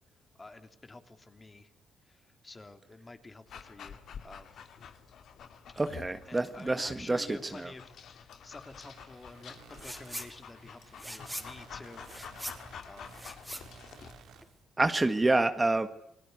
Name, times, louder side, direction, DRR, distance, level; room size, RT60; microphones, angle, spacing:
voice 1, 0.4-1.7 2.1-4.6 6.3-12.0 12.8-13.3, left 2 dB, 25° left, 8 dB, 3.2 m, -50 dB
Dog, 3.5-14.2, left 7 dB, 65° left, 2.9 m, -49 dB
voice 2, 5.8-7.7 14.8-15.9, right 2 dB, 20° right, 9 dB, 1.7 m, -28 dB
sound 1, 8.6-14.4, right 7 dB, 85° right, 5.0 m, -56 dB
sound 2, 9.7-10.3 10.6-14.6, equal, ahead, 4.2 m, -43 dB
29.5 x 20.0 x 8.2 m, 0.74 s
cardioid pair, 90°, 0 cm